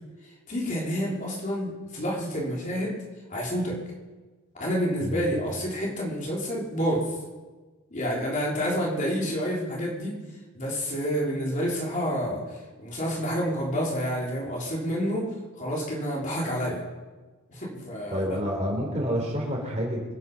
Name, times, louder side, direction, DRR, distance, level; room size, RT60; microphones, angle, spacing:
voice 1, 0.5-3.0 3.3-3.8 4.6-7.1 7.9-10.2 10.5-15.3 15.6-16.8 17.5-18.3, equal, 35° left, -3 dB, 3.7 m, -29 dB
voice 2, 18.1-20.1, equal, 30° right, 0 dB, 3.7 m, -28 dB
25.0 x 9.5 x 5.4 m, 1.3 s
head